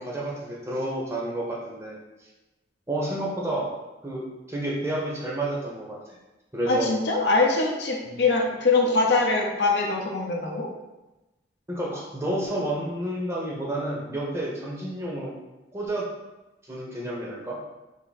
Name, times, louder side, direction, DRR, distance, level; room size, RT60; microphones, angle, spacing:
voice 1, 0.0-2.0 2.9-3.7 4.0-6.2 6.5-6.9 8.1-8.2 11.7-15.3 15.7-16.1 16.6-17.6, right 1 dB, 15° right, -4 dB, 0.7 m, -30 dB
voice 2, 6.7-10.7, left 3 dB, 70° left, 0 dB, 0.6 m, -23 dB
3.5 x 2.6 x 4.0 m, 1.1 s
head